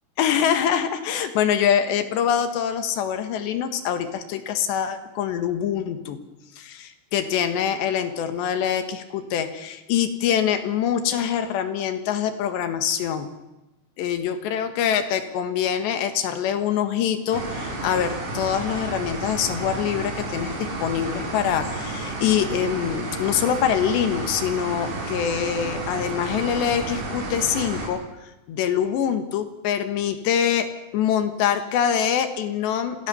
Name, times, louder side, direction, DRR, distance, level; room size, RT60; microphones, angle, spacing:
voice 1, 0.2-6.2 6.6-13.3 14.0-30.7 30.9-33.1, left 9 dB, 65° left, 9 dB, 3.4 m, -24 dB
sound 1, 17.3-27.9, right 2 dB, 85° right, 8.1 m, -31 dB
27.5 x 16.5 x 7.0 m, 0.98 s
omnidirectional pair, 5.9 m